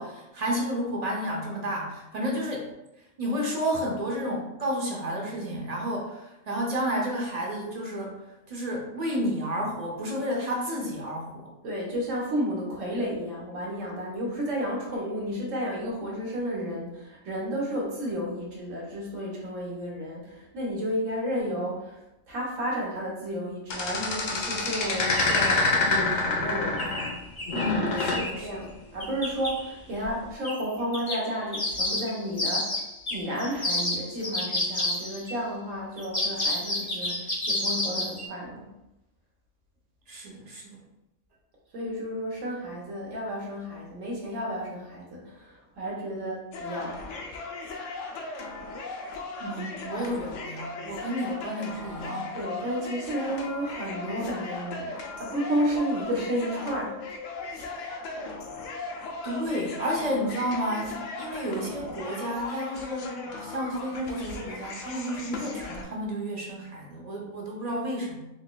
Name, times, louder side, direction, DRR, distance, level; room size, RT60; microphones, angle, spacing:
voice 1, 0.0-2.7 3.0-11.5 27.5-28.8 40.1-40.8 49.4-52.4 59.2-68.3, equal, 40° right, -2 dB, 0.6 m, -31 dB
voice 2, 11.6-26.9 27.8-32.8 33.1-38.7 41.7-47.0 52.3-57.0, equal, 75° right, -4 dB, 1.3 m, -32 dB
sound 1, 23.7-27.2 27.5-28.3 30.0-30.3, left 3 dB, 90° left, 0.4 m, -26 dB
sound 2, 24.7-24.8 25.1-25.6 26.8-28.4 29.0-29.6 30.4-30.6 30.9-35.3 36.0-38.2, left 1 dB, 25° left, 0.5 m, -30 dB
sound 3, 46.5-65.8, left 3 dB, 70° left, 0.9 m, -37 dB
3.9 x 2.9 x 2.2 m, 0.92 s
omnidirectional pair, 1.4 m